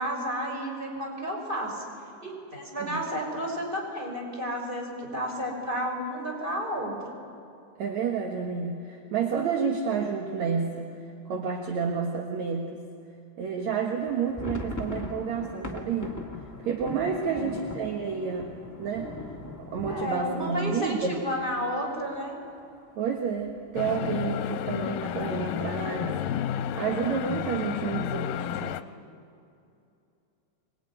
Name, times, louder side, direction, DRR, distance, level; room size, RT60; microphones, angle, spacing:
voice 1, 0.0-1.8 2.2-7.0 17.2-17.5 19.9-22.4, equal, 15° right, -1 dB, 5.8 m, -32 dB
voice 2, 7.8-11.0 11.3-12.8 13.4-16.2 16.6-18.5 18.8-19.1 19.6-21.2 23.0-26.2 26.7-28.8, right 6 dB, 60° right, 2 dB, 2.6 m, -30 dB
sound 1, 14.0-21.7 22.1-22.2 22.4-22.7 23.2-23.7, left 2 dB, 10° left, 1.1 m, -40 dB
sound 2, 23.8-28.8, left 10 dB, 85° left, 2.4 m, -31 dB
24.5 x 21.5 x 9.8 m, 2.6 s
omnidirectional pair, 4.0 m